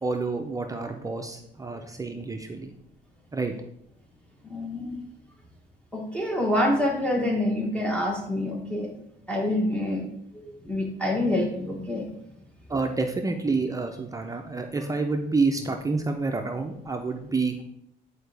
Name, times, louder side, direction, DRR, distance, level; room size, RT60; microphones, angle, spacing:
voice 1, 0.0-2.7 3.3-3.5 12.7-17.6, right 3 dB, 20° right, 4 dB, 0.5 m, -28 dB
voice 2, 4.4-5.0 5.9-8.9 9.3-10.0 10.3-12.1, left 1 dB, 5° left, 0 dB, 1.2 m, -26 dB
10.0 x 4.6 x 3.4 m, 0.77 s
cardioid pair, 120°, 18 cm